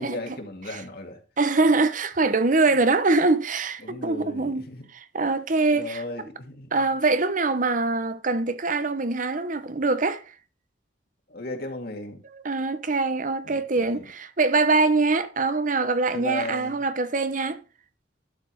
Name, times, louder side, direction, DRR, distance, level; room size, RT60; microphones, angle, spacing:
voice 1, 0.0-1.2 2.7-2.8 3.8-4.9 5.7-6.7 11.3-12.2 13.4-14.1 16.1-16.8, left 2 dB, 55° left, 2.2 m, -35 dB
voice 2, 1.4-4.7 4.9-6.0 6.7-10.2 12.4-17.6, right 3 dB, 45° right, 0.9 m, -23 dB
12.0 x 6.0 x 4.7 m
head